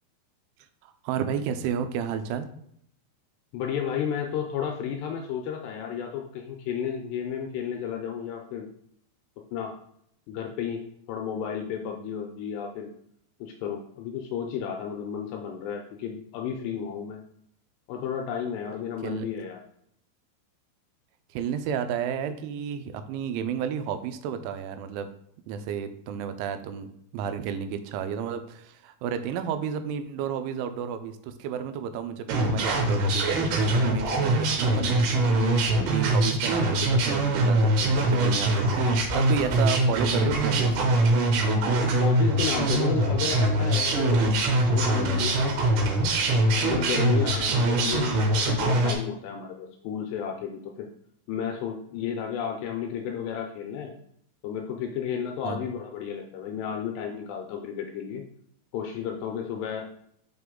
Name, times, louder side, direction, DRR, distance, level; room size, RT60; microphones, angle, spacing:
voice 1, 0.8-2.5 19.0-19.3 21.3-25.1 25.5-35.1 35.6-38.9 39.1-41.1 55.4-55.6, right 8 dB, 90° right, 9 dB, 3.0 m, -32 dB
voice 2, 3.5-8.7 9.5-9.8 10.3-10.8 11.1-12.9 13.4-17.2 17.9-19.6 42.0-45.4 46.6-50.9 51.3-53.9 54.4-58.2 58.7-59.8, left 8 dB, 85° left, 2 dB, 2.5 m, -32 dB
sound 1, 32.3-48.9, right 1 dB, 70° right, 2.7 m, -23 dB
5.9 x 5.7 x 3.7 m, 0.70 s
omnidirectional pair, 5.4 m